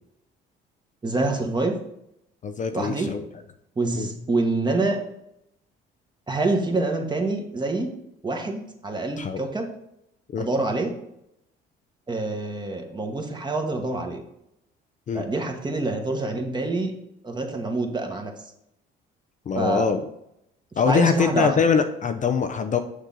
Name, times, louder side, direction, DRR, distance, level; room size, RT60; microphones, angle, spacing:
voice 1, 1.0-1.8 2.7-3.1 3.8-5.0 6.3-7.9 8.2-9.7 10.4-10.9 12.1-14.2 15.1-16.9 17.2-18.3 19.5-19.9 20.9-21.6, right 2 dB, 20° right, 3 dB, 1.4 m, -26 dB
voice 2, 2.4-3.2 3.9-4.1 9.2-9.4 10.3-10.5 15.1-15.3 19.5-20.0 20.8-22.8, left 6 dB, 35° left, 7 dB, 0.6 m, -23 dB
6.5 x 6.0 x 3.9 m, 0.80 s
supercardioid pair, 85°, 21 cm